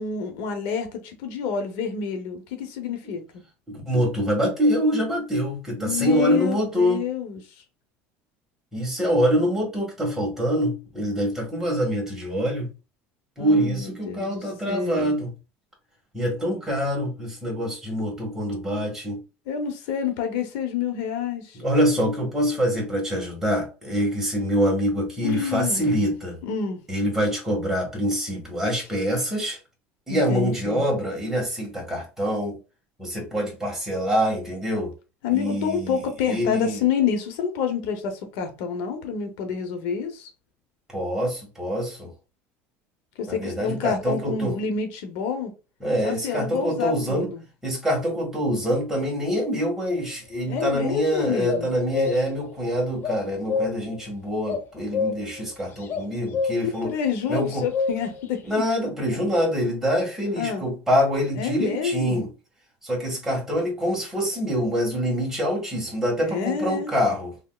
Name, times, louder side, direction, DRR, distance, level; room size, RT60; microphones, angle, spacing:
voice 1, 0.0-3.4 5.8-7.6 13.4-15.2 19.5-21.6 25.2-26.1 26.4-26.8 30.1-30.9 35.2-40.3 43.2-45.5 46.0-47.4 50.5-51.7 56.6-58.4 59.1-59.2 60.4-60.7 61.3-62.3 66.2-66.9, left 7 dB, 75° left, 0.8 m, -28 dB
voice 2, 3.7-7.0 8.7-12.7 13.4-15.3 16.1-19.2 21.6-26.4 26.9-29.6 30.1-32.6 33.0-34.9 35.3-36.0 36.3-36.8 40.9-42.1 43.3-44.5 45.8-47.3 47.6-56.9 57.3-57.6 58.5-62.3 62.8-67.3, equal, 5° right, 1.6 m, -25 dB
sound 1, 49.9-50.0 50.5-50.7 51.5-52.4 53.0-54.0 54.5-55.5 55.8-56.8 57.3-58.2, left 5 dB, 40° left, 0.6 m, -28 dB
3.5 x 2.9 x 2.3 m
cardioid pair, 135°, 6 cm